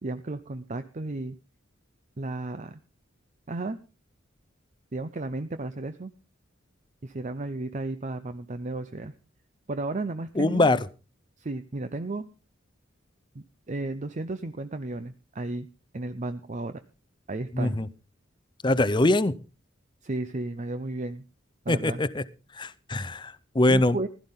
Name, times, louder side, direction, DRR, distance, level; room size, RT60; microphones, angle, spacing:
voice 1, 0.0-1.4 2.2-2.8 3.5-3.8 4.9-6.1 7.0-9.1 9.7-10.7 11.4-12.3 13.3-15.7 15.9-16.8 17.3-17.8 20.0-21.2 21.6-22.0 23.7-24.1, right 2 dB, 40° right, 11 dB, 0.6 m, -33 dB
voice 2, 10.4-10.8 17.5-17.9 18.6-19.3 21.7-22.2 22.5-24.0, left 2 dB, 25° left, 16 dB, 0.6 m, -23 dB
16.0 x 12.5 x 3.7 m, 0.32 s
head